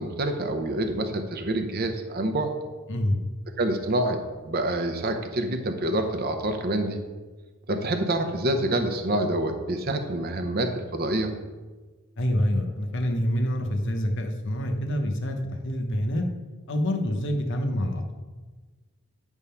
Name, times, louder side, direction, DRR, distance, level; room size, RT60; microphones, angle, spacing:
voice 1, 0.0-2.5 3.6-7.0 7.7-11.3, right 1 dB, 45° right, 6 dB, 0.7 m, -27 dB
voice 2, 2.9-3.2 12.2-16.3 16.7-18.1, equal, 55° left, 4 dB, 0.8 m, -26 dB
9.6 x 3.6 x 5.6 m, 1.3 s
head